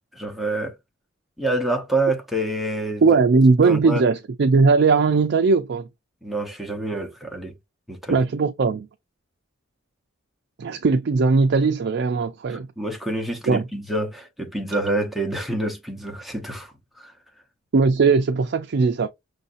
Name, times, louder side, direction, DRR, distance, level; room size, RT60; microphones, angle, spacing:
voice 1, 0.1-0.8 1.4-3.0 3.6-4.0 6.2-7.5 7.9-8.2 12.5-17.1, right 1 dB, ahead, 0.8 m, -27 dB
voice 2, 3.0-5.9 8.1-8.9 10.6-12.7 13.5-13.6 17.7-19.1, right 4 dB, 55° right, 0.4 m, -19 dB
6.2 x 2.7 x 2.5 m
head